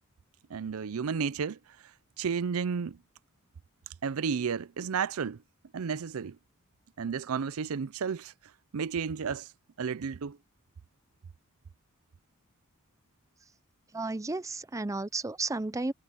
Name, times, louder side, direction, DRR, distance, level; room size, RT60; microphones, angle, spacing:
voice 1, 0.5-1.6 2.2-3.0 4.0-5.4 5.7-6.4 7.0-8.3 8.7-9.5 9.8-10.4, right 6 dB, 75° right, 0.5 m, -32 dB
voice 2, 13.9-15.9, right 3 dB, 15° right, 0.5 m, -33 dB
head